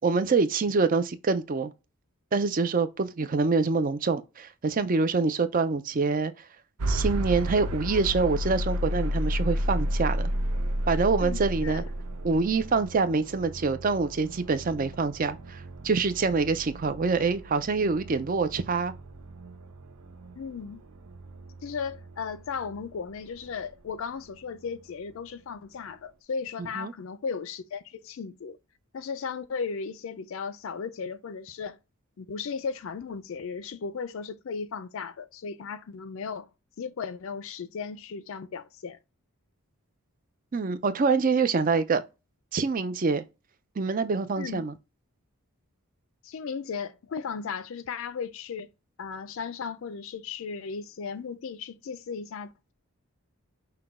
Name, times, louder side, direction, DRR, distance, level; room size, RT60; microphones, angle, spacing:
voice 1, 0.0-1.7 2.3-6.3 6.9-10.3 10.9-11.8 12.2-18.9 26.6-26.9 40.5-42.0 42.5-43.2 43.8-44.7, right 4 dB, 35° right, 0.4 m, -25 dB
sound 1, 6.8-22.7, equal, 85° right, 0.7 m, -32 dB
voice 2, 11.2-11.8 20.4-20.8 21.6-28.6 28.9-31.8 32.2-36.5 36.8-39.0 44.4-44.7 46.2-48.7 49.0-52.7, left 5 dB, 60° left, 0.4 m, -36 dB
5.8 x 2.2 x 3.5 m
head